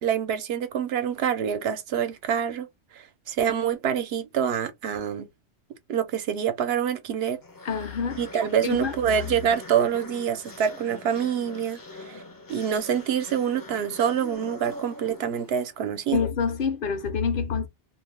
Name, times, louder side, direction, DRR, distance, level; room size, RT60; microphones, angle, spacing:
voice 1, 0.0-2.7 2.9-5.3 5.9-7.4 8.2-12.2 12.5-16.2, right 8 dB, 70° right, 0.8 m, -26 dB
sound 1, 7.4-15.9, left 2 dB, 30° left, 0.4 m, -43 dB
voice 2, 7.6-8.2 8.6-9.0 16.1-17.7, left 6 dB, 55° left, 0.8 m, -26 dB
2.4 x 2.1 x 3.2 m
omnidirectional pair, 1.1 m